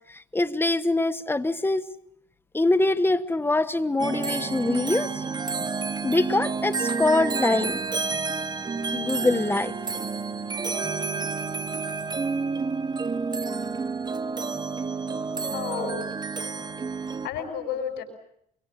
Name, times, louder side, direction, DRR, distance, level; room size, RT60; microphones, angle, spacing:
voice 1, 0.1-1.8 2.5-5.2 6.0-7.8 8.9-9.7 15.8-16.0, left 2 dB, 15° left, 13 dB, 1.2 m, -24 dB
sound 1, 4.0-17.3, right 4 dB, 25° right, 1.3 m, -29 dB
voice 2, 15.5-16.1 17.0-18.0, left 7 dB, 80° left, 7 dB, 6.1 m, -32 dB
25.5 x 24.0 x 8.5 m, 0.73 s
cardioid pair, 110°, 17 cm